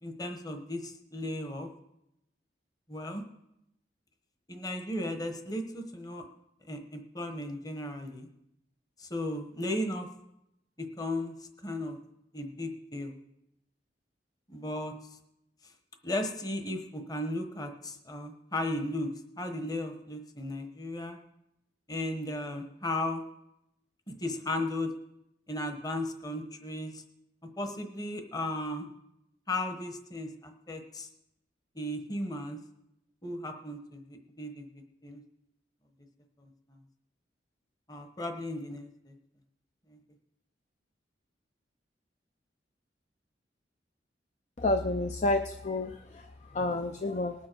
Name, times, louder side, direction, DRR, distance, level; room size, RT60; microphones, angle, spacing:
voice 1, 0.0-1.7 2.9-3.2 4.5-6.2 6.7-8.3 9.0-10.1 10.8-11.3 11.6-12.0 12.3-13.1 14.5-14.9 16.0-19.1 19.4-21.2 21.9-23.2 24.1-24.9 25.5-27.0 27.6-28.9 29.5-31.1 31.7-32.6 33.2-34.7 35.0-35.2 36.4-36.8 37.9-39.1 39.9-40.0, left 1 dB, 20° left, 5 dB, 1.1 m, -35 dB
voice 2, 44.6-46.3 46.5-47.3, left 2 dB, 40° left, 6 dB, 0.5 m, -29 dB
19.5 x 7.4 x 4.6 m, 0.83 s
head